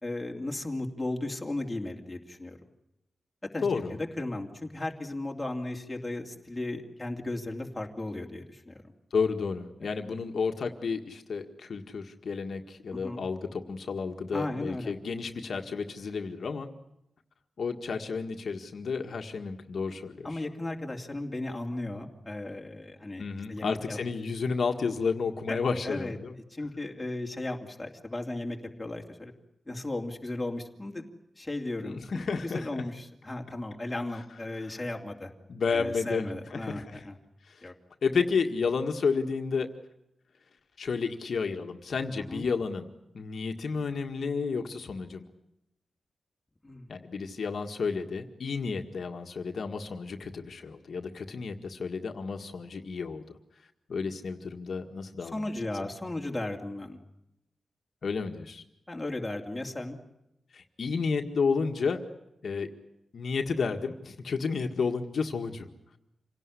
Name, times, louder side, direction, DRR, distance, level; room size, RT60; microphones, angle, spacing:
voice 1, 0.0-2.6 3.5-8.8 12.9-13.2 14.3-14.9 20.2-23.2 23.5-24.0 25.5-25.6 25.8-26.2 26.5-29.3 29.7-31.1 31.4-35.3 35.7-37.2 37.6-37.7 42.2-42.4 46.6-47.0 55.2-57.0 58.9-60.0, left 2 dB, 10° left, 1 dB, 2.8 m, -35 dB
voice 2, 3.6-4.0 9.1-16.7 17.6-20.4 23.2-26.3 31.8-32.7 34.6-34.7 35.5-37.0 37.5-37.6 38.0-39.7 40.8-42.9 43.1-45.2 46.9-53.4 53.9-55.4 55.8-55.9 58.0-58.6 60.5-62.0 62.4-62.7 63.1-65.7, left 5 dB, 60° left, 4 dB, 1.8 m, -31 dB
27.5 x 18.0 x 9.9 m, 0.84 s
wide cardioid pair, 165°, 0 cm